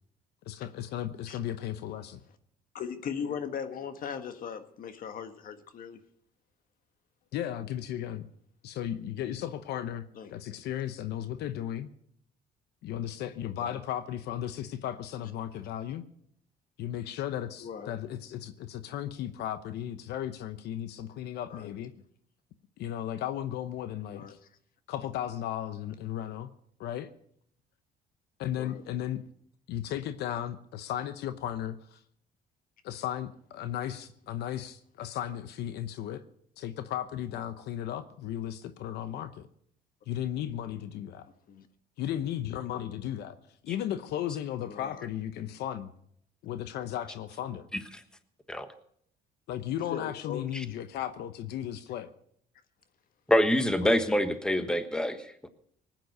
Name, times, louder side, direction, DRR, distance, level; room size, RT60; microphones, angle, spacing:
voice 1, 0.5-2.2 7.3-8.2 8.6-10.0 10.3-11.9 12.8-16.0 16.8-21.9 22.8-24.2 24.9-26.5 26.8-27.1 28.4-29.2 29.7-32.0 32.8-36.2 36.6-39.5 40.1-41.3 42.0-43.4 43.6-45.9 46.4-47.7 49.5-52.1, left 11 dB, 75° left, 0.9 m, -35 dB
voice 2, 2.7-6.0 10.1-10.3 13.4-13.8 17.6-17.9 21.5-21.7 24.1-24.3 28.6-28.8 41.5-41.7 44.7-45.0 49.9-50.4 53.8-54.0, left 7 dB, 55° left, 1.6 m, -38 dB
voice 3, 53.3-55.2 55.4-55.5, equal, 5° left, 1.3 m, -25 dB
19.5 x 9.3 x 6.6 m
cardioid pair, 110°, 17 cm